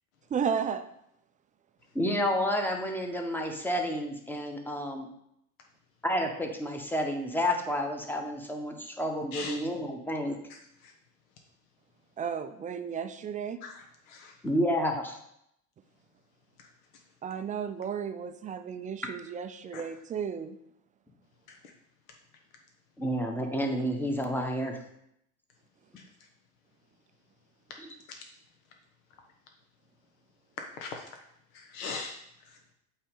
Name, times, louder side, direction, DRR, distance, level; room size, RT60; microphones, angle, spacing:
voice 1, 0.3-0.9 12.2-13.6 17.2-20.6, right 7 dB, 20° right, 9 dB, 0.4 m, -33 dB
voice 2, 1.9-5.1 6.0-10.4 14.4-15.2 23.0-24.8 27.8-27.9, equal, 5° left, 3 dB, 1.2 m, -30 dB
voice 3, 13.6-14.3 16.6-16.7 19.7-19.8 21.5-21.6 30.8-31.0 31.5-32.6, left 4 dB, 60° left, 3 dB, 1.1 m, -40 dB
8.4 x 3.2 x 5.4 m, 0.75 s
figure-of-eight pair, 75°, 46 cm